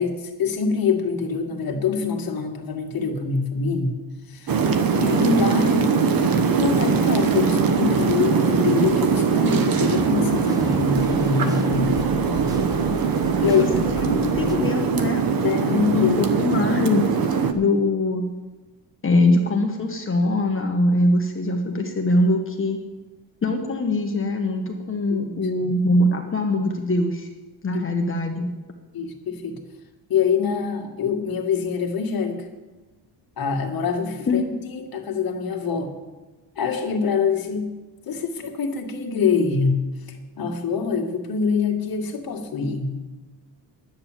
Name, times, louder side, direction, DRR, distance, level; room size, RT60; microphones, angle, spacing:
voice 1, 0.0-3.9 4.3-4.6 4.9-6.0 6.5-11.9 12.3-12.4 13.4-13.8 15.4-16.3 25.1-25.7 27.7-27.8 28.9-29.6 30.1-32.5 33.4-34.4 34.7-35.9 36.6-37.7 38.1-42.9, left 5 dB, 50° left, 2 dB, 2.1 m, -25 dB
sound 1, 4.5-17.5, right 6 dB, 50° right, 1.1 m, -21 dB
sound 2, 9.5-14.5, equal, 10° right, 1.1 m, -33 dB
voice 2, 14.0-15.2 15.9-17.0 17.5-18.3 19.0-22.8 23.4-27.3 27.6-28.5 34.3-34.4, left 2 dB, 30° left, 2 dB, 1.3 m, -22 dB
10.5 x 8.8 x 7.4 m, 1.2 s
cardioid pair, 105°, 45 cm